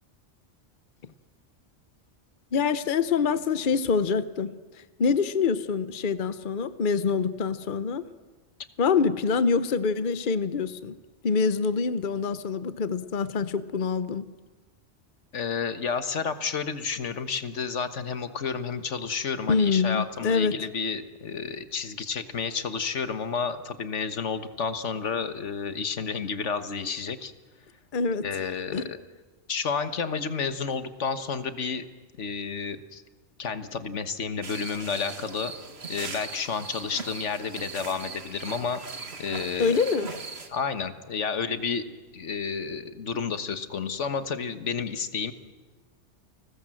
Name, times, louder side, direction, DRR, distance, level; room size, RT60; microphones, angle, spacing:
voice 1, 2.5-4.5 5.0-8.1 8.8-11.0 11.2-14.2 19.5-20.6 27.9-28.3 28.7-28.9 39.6-40.1, left 5 dB, 50° left, 13 dB, 1.0 m, -25 dB
voice 2, 15.3-27.3 28.2-29.0 29.5-31.8 32.2-33.0 33.4-35.5 35.9-38.8 39.2-39.8 40.5-41.9 42.1-45.3, left 5 dB, 90° left, 10 dB, 1.6 m, -31 dB
sound 1, 34.4-40.5, right 4 dB, 65° right, 2.0 m, -39 dB
29.5 x 20.0 x 7.7 m, 1.3 s
omnidirectional pair, 1.2 m